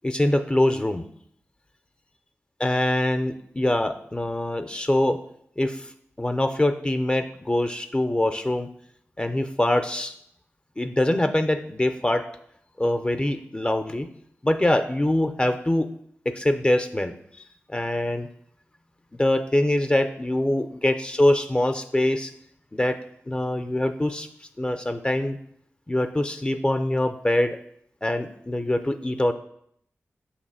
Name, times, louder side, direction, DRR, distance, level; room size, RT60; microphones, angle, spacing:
voice 1, 0.0-1.1 2.6-5.2 5.6-5.9 6.2-8.7 9.2-10.1 10.8-12.2 12.8-14.1 14.4-15.9 16.3-17.1 17.7-18.3 19.2-22.3 22.7-23.0 23.3-24.3 24.6-25.4 25.9-27.6 28.0-29.3, left 1 dB, 20° left, 8 dB, 0.4 m, -24 dB
6.4 x 2.9 x 5.5 m, 0.68 s
wide cardioid pair, 80°, 5 cm